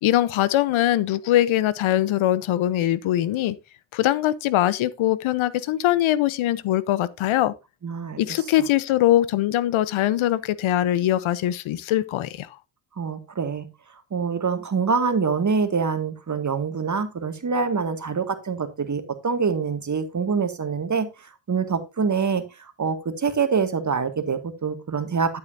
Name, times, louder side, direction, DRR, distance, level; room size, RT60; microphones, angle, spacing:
voice 1, 0.0-3.6 3.9-7.5 8.2-12.6, left 13 dB, 80° left, 0.9 m, -22 dB
voice 2, 7.8-8.2 13.0-13.7 14.1-25.4, right 5 dB, 35° right, 2.0 m, -25 dB
12.0 x 8.2 x 2.7 m
cardioid pair, 75°, 48 cm